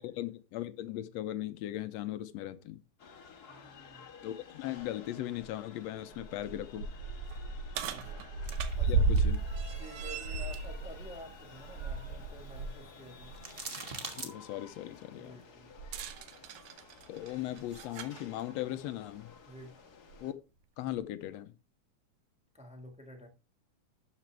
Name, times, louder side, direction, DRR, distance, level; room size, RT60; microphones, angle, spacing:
voice 1, 0.0-2.8 4.2-6.9 8.8-9.4 14.1-15.4 17.1-19.3 20.2-20.4 20.8-21.5, left 13 dB, 75° left, 1.7 m, -38 dB
sound 1, 3.0-20.3, left 5 dB, 45° left, 1.4 m, -54 dB
voice 2, 3.5-4.0 7.8-8.2 8.8-9.1 9.8-13.3 15.1-15.7 19.4-19.7 22.5-23.3, equal, 5° right, 0.5 m, -50 dB
sound 2, 4.8-4.9 5.4-5.5 6.1-12.8 13.2-13.4 15.8-18.2 19.2-19.3 20.1-20.2, right 4 dB, 80° right, 2.2 m, -34 dB
sound 3, 8.4-14.3, right 3 dB, 40° right, 0.8 m, -48 dB
12.0 x 6.7 x 3.3 m
omnidirectional pair, 3.3 m